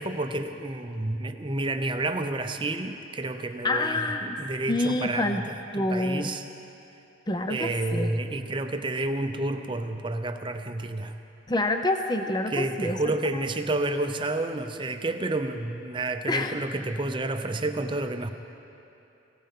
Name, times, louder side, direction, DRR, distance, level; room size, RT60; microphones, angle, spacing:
voice 1, 0.0-6.4 7.5-11.2 12.2-18.3, right 2 dB, 25° right, 7 dB, 0.6 m, -30 dB
voice 2, 3.6-4.4 4.7-5.4 5.7-6.3 7.3-8.1 11.5-13.0 16.3-16.6, left 2 dB, 20° left, 6 dB, 0.5 m, -27 dB
20.5 x 17.5 x 3.7 m, 2.9 s
head